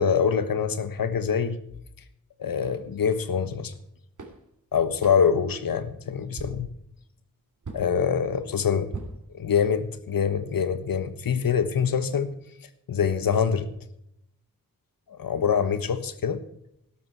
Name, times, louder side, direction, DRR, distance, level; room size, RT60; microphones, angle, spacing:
voice 1, 0.0-1.6 2.4-3.7 4.7-6.7 7.7-8.9 9.3-12.3 12.9-13.7 15.1-16.4, left 7 dB, 80° left, 12 dB, 1.3 m, -25 dB
sound 1, 2.6-2.8 3.7-3.8 4.2-4.5 5.0-5.4 5.9-6.0 6.4-6.8 7.6-7.9 8.9-9.8, right 3 dB, 60° right, 3.0 m, -40 dB
12.5 x 12.0 x 4.6 m, 0.76 s
cardioid pair, 55°, 34 cm